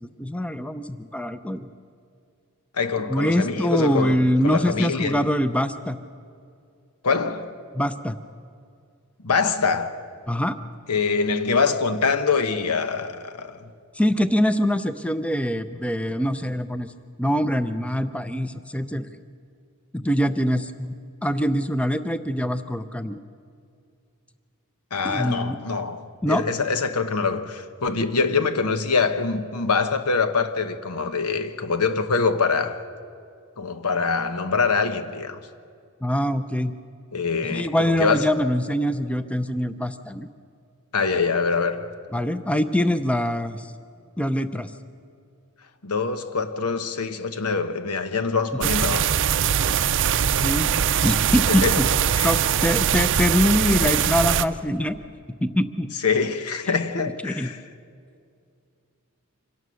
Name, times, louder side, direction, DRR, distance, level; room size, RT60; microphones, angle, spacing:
voice 1, 0.0-1.7 3.1-6.0 7.7-8.2 10.3-10.6 13.9-16.9 17.2-19.1 19.9-20.9 21.2-23.2 25.0-25.6 26.2-26.4 36.0-36.7 37.5-40.3 42.1-43.7 44.2-44.7 50.4-50.7 51.0-51.9 52.2-55.0 55.4-55.9 57.2-57.5, equal, 5° left, 0.5 m, -24 dB
voice 2, 2.7-5.2 7.0-7.5 9.2-10.0 10.9-13.7 24.9-32.8 33.6-35.4 37.1-38.3 40.9-42.0 45.8-49.1 51.5-51.8 52.2-52.3 53.8-53.9 56.0-57.6, left 4 dB, 85° left, 1.1 m, -24 dB
sound 1, 48.6-54.4, right 8 dB, 55° right, 0.5 m, -22 dB
25.5 x 18.0 x 6.3 m
head